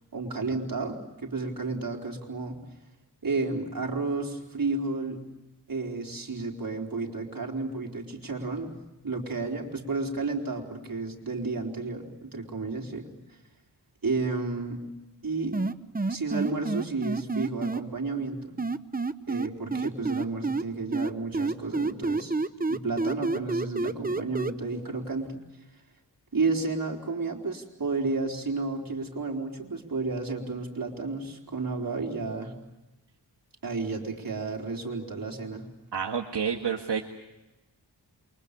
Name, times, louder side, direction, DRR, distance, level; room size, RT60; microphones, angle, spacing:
voice 1, 0.1-2.6 3.2-5.2 5.7-8.7 9.0-13.1 14.0-14.8 15.2-15.6 16.1-18.5 19.3-22.3 22.7-25.3 26.3-32.5 33.6-35.6, right 3 dB, 55° right, 1 dB, 4.3 m, -32 dB
sound 1, 15.5-17.8 18.6-20.6 20.9-24.5, right 3 dB, 20° right, 0.9 m, -28 dB
voice 2, 35.9-37.0, right 7 dB, 75° right, 1 dB, 1.8 m, -29 dB
28.5 x 23.5 x 6.9 m, 1.0 s
wide cardioid pair, 90°, 42 cm